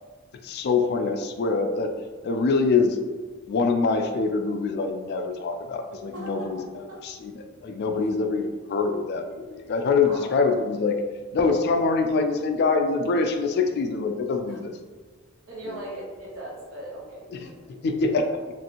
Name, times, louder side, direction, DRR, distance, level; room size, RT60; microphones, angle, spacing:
voice 1, 0.4-1.9 2.2-3.0 3.5-6.6 7.0-11.0 11.3-14.7 15.7-15.8 17.3-17.5 17.8-18.4, left 4 dB, 55° left, 6 dB, 0.3 m, -24 dB
voice 2, 6.1-6.5 10.0-10.4 14.4-14.6 15.5-17.2, right 1 dB, 90° right, -6 dB, 0.8 m, -38 dB
3.1 x 2.6 x 2.8 m, 1.4 s
head